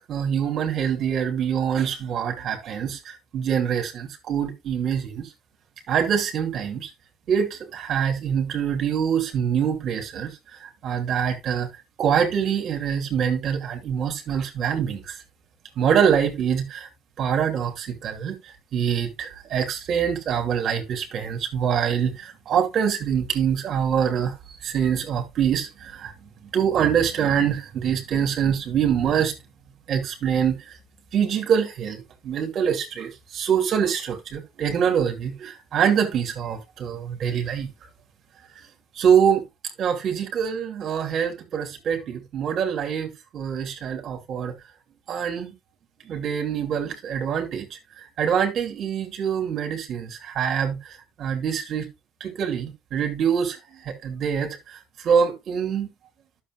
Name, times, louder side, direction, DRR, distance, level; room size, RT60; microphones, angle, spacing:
voice 1, 0.0-5.3 5.9-6.9 7.3-11.7 12.0-15.2 15.8-16.9 17.2-26.1 26.5-29.3 29.9-30.7 31.1-37.7 38.9-39.4 39.8-44.5 45.1-45.5 46.1-51.8 52.2-55.9, right 8 dB, 55° right, 2.7 m, -25 dB
11.5 x 7.0 x 2.4 m
hypercardioid pair, 70°, 0 cm